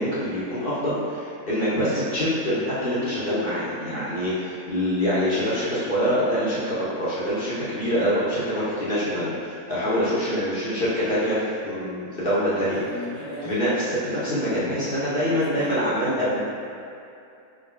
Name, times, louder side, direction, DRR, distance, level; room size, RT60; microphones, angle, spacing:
voice 1, 0.0-12.8 13.4-16.4, equal, 40° left, -10 dB, 1.2 m, -25 dB
voice 2, 12.6-13.7 15.2-16.4, left 1 dB, 20° right, -11 dB, 0.5 m, -37 dB
5.0 x 3.8 x 2.3 m, 2.6 s
omnidirectional pair, 1.6 m